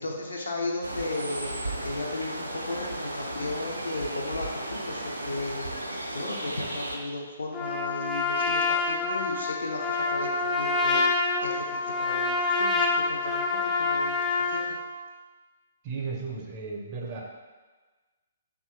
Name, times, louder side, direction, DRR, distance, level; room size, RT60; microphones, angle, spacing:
voice 1, 0.0-5.7 6.1-14.8, left 2 dB, 75° left, 0 dB, 0.5 m, -35 dB
sound 1, 0.8-7.0, right 1 dB, 90° right, 0.4 m, -35 dB
Trumpet, 7.5-14.8, left 3 dB, 15° left, 0.3 m, -27 dB
voice 2, 15.8-17.2, right 4 dB, 35° right, -1 dB, 0.5 m, -34 dB
2.8 x 2.4 x 3.1 m, 1.3 s
figure-of-eight pair, 125°, 0 cm